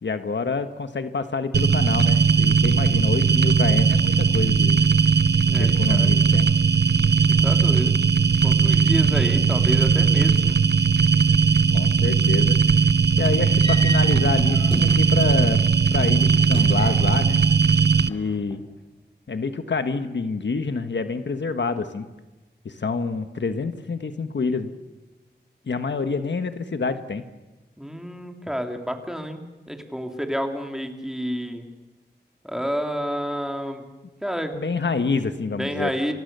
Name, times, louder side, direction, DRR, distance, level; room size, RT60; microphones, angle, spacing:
voice 1, 0.0-4.9 5.5-6.5 11.7-12.6 13.2-15.6 15.9-17.4 18.1-18.6 19.3-22.1 22.6-24.7 25.7-27.2 34.5-35.9, left 4 dB, 85° left, 9 dB, 1.4 m, -27 dB
sound 1, 1.5-18.1, right 5 dB, 70° right, 0.8 m, -18 dB
voice 2, 5.5-6.2 7.4-8.0 8.4-10.6 27.8-31.7 32.4-33.8 34.2-34.5 35.5-36.1, equal, 5° right, 4 dB, 3.1 m, -29 dB
sound 2, 13.6-15.4 16.3-17.4 17.7-18.5, left 1 dB, 30° left, 7.1 m, -35 dB
30.0 x 25.5 x 6.8 m, 1.1 s
wide cardioid pair, 75°, 18 cm